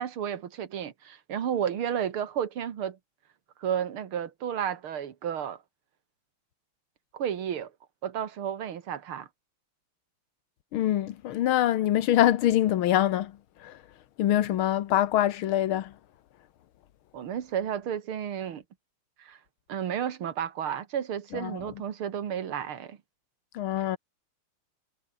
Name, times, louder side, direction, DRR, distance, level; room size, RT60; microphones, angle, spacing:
voice 1, 0.0-3.0 3.6-5.6 7.1-7.7 8.0-9.3 17.1-18.6 19.2-19.4 19.7-23.0, right 9 dB, 85° right, 2.5 m, -32 dB
voice 2, 10.7-13.3 13.6-13.7 14.2-15.9 21.3-21.6 23.6-24.0, left 12 dB, 80° left, 1.8 m, -24 dB
omnidirectional pair, 2.3 m